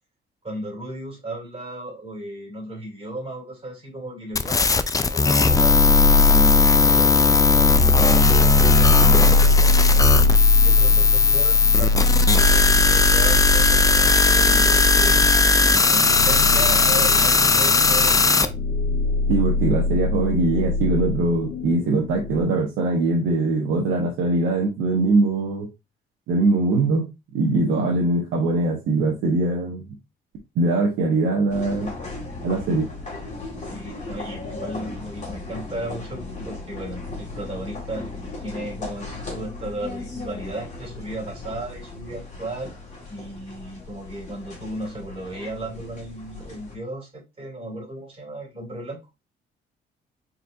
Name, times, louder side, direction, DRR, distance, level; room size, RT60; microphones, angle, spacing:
voice 1, 0.4-15.4 15.9-18.5 33.6-38.1 38.4-42.7 43.1-49.0, right 1 dB, 30° right, 2.8 m, -35 dB
sound 1, 4.3-18.5, left 4 dB, 15° left, 0.4 m, -18 dB
sound 2, 5.4-22.4, left 2 dB, 70° left, 1.4 m, -21 dB
voice 2, 19.3-25.7 26.3-29.8 30.6-31.9 32.4-32.9, right 2 dB, 80° right, 1.1 m, -22 dB
sound 3, 31.5-46.8, left 3 dB, 35° left, 1.9 m, -37 dB
4.2 x 4.1 x 2.6 m
cardioid pair, 90°, 20 cm